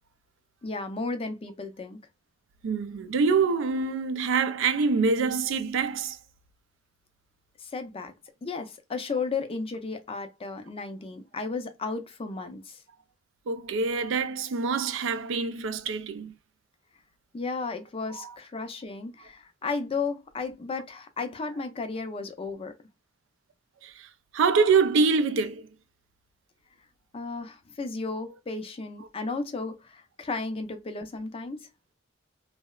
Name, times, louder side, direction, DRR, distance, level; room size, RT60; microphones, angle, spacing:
voice 1, 0.6-2.0 7.6-8.1 8.4-12.8 17.3-22.7 27.1-31.7, left 4 dB, 30° left, 0.4 m, -34 dB
voice 2, 2.6-6.2 13.5-16.4 18.1-18.3 23.8-25.7, right 5 dB, 70° right, 0.4 m, -25 dB
2.8 x 2.0 x 2.2 m
head